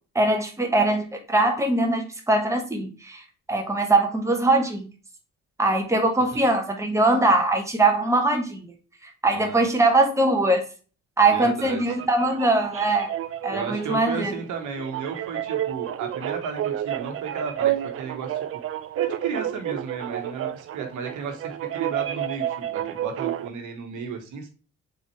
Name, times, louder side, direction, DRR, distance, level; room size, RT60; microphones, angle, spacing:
voice 1, 0.1-3.2 3.5-4.9 5.6-8.7 9.0-10.6 11.2-13.1 13.4-14.3, right 2 dB, 10° right, 3 dB, 1.1 m, -22 dB
voice 2, 9.3-9.6 11.3-11.8 13.5-18.4 19.0-24.5, right 6 dB, 80° right, 5 dB, 1.1 m, -34 dB
sound 1, 11.4-23.5, right 11 dB, 50° right, 0.4 m, -31 dB
4.0 x 3.7 x 2.9 m, 0.36 s
cardioid pair, 90°, 30 cm